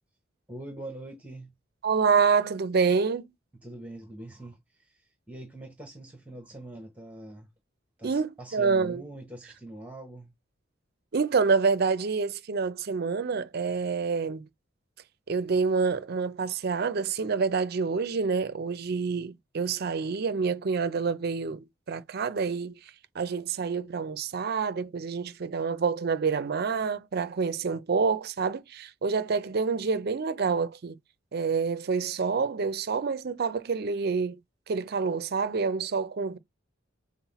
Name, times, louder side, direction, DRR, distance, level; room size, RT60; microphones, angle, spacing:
voice 1, 0.5-1.5 3.6-7.5 8.0-10.3, right 1 dB, 5° right, 1.0 m, -43 dB
voice 2, 1.8-3.3 8.0-9.0 11.1-14.5 15.3-31.0 31.3-34.4 34.7-36.4, right 5 dB, 50° right, 0.5 m, -27 dB
5.6 x 2.0 x 4.1 m
head